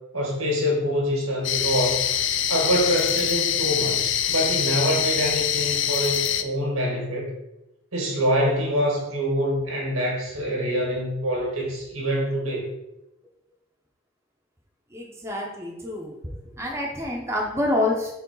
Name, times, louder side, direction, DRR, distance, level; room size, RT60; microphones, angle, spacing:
voice 1, 0.1-2.0 2.5-7.3 7.9-12.7, equal, 85° right, -1 dB, 2.0 m, -25 dB
sound 1, 1.4-6.4, left 9 dB, 55° left, 0.4 m, -24 dB
voice 2, 14.9-16.1 16.6-18.1, left 2 dB, 10° right, -2 dB, 0.8 m, -27 dB
4.6 x 3.7 x 5.4 m, 0.91 s
head